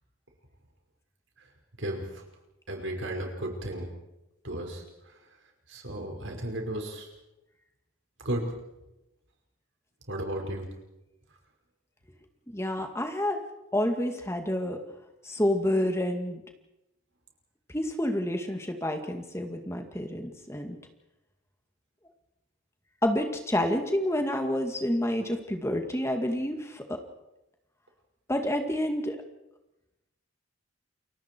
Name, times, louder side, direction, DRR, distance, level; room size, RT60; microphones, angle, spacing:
voice 1, 1.8-2.2 2.7-3.9 4.4-5.1 5.7-7.1 8.2-8.4 10.1-10.7, right 1 dB, 65° right, 2 dB, 5.3 m, -34 dB
voice 2, 12.5-13.4 13.7-14.8 15.2-16.4 17.7-20.8 23.0-27.0 28.3-29.2, left 1 dB, 15° left, 5 dB, 2.1 m, -28 dB
29.5 x 23.5 x 4.6 m, 0.92 s
head